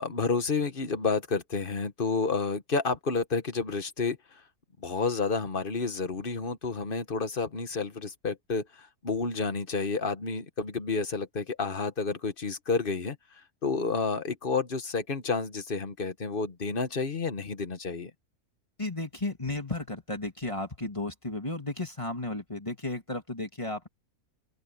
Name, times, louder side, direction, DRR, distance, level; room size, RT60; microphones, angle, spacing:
voice 1, 0.0-4.2 4.8-13.2 13.6-18.1, left 4 dB, 40° left, 1.4 m, -30 dB
voice 2, 18.8-23.9, left 2 dB, 20° left, 2.7 m, -34 dB
omnidirectional pair, 1.6 m